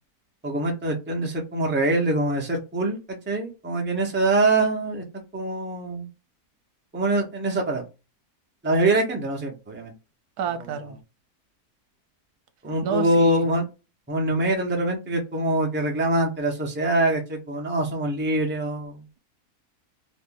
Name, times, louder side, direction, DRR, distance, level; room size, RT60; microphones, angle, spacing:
voice 1, 0.4-5.0 5.3-6.1 6.9-7.8 8.6-9.9 12.6-13.6 14.1-19.0, right 2 dB, 10° right, 0.7 m, -24 dB
voice 2, 10.4-11.0 12.8-13.5, right 7 dB, 80° right, 1.2 m, -30 dB
3.0 x 2.6 x 3.8 m
omnidirectional pair, 1.6 m